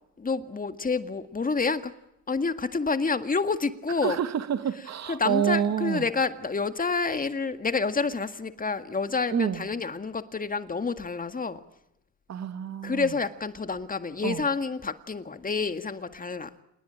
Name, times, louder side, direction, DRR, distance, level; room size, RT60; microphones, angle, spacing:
voice 1, 0.2-1.9 2.3-4.2 5.1-11.6 12.8-16.5, left 4 dB, 30° left, 1.9 m, -28 dB
voice 2, 4.0-6.0 9.3-9.6 12.3-13.1 14.2-14.4, right 9 dB, 60° right, 2.0 m, -28 dB
27.5 x 20.5 x 8.9 m
cardioid pair, 90°, 30 cm